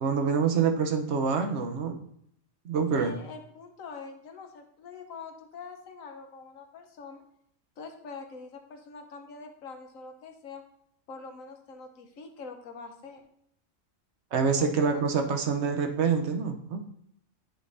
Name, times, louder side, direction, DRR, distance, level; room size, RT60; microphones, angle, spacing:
voice 1, 0.0-2.0 2.6-3.1 14.3-16.8, right 5 dB, 60° right, 5 dB, 1.1 m, -26 dB
voice 2, 2.9-7.2 7.8-10.6 11.1-13.2 14.6-15.0 15.3-15.4, left 4 dB, 85° left, 5 dB, 1.3 m, -44 dB
10.0 x 5.3 x 2.7 m, 0.70 s
omnidirectional pair, 1.4 m